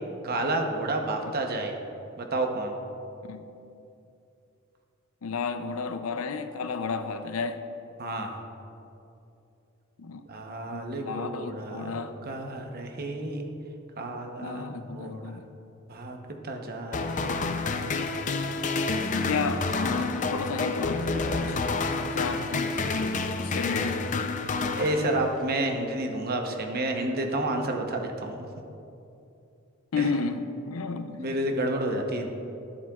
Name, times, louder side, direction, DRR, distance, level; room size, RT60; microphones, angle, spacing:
voice 1, 0.2-1.8 2.2-2.8 8.0-8.4 10.3-13.5 14.0-15.4 15.9-16.2 16.4-17.4 22.3-22.6 24.8-28.5 30.0-30.1 31.1-32.3, right 1 dB, 50° right, 3 dB, 0.9 m, -30 dB
voice 2, 5.2-7.6 10.0-10.2 10.7-12.1 14.4-15.5 19.2-21.6 22.1-22.7 23.4-24.3 29.9-31.2, left 4 dB, 90° left, 9 dB, 0.5 m, -32 dB
sound 1, 16.9-25.5, left 3 dB, 40° left, 0.5 m, -29 dB
12.0 x 10.5 x 2.4 m, 2.8 s
head